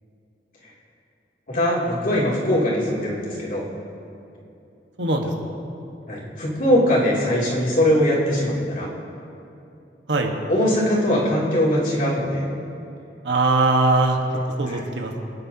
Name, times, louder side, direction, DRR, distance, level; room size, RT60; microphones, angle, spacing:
voice 1, 1.5-3.6 6.1-8.9 10.5-12.4 14.7-14.8, equal, 50° left, -6 dB, 2.9 m, -21 dB
voice 2, 5.0-5.3 10.1-10.3 13.2-14.2 14.6-15.2, right 3 dB, 75° right, 2 dB, 1.4 m, -20 dB
25.0 x 9.9 x 2.9 m, 2.8 s
head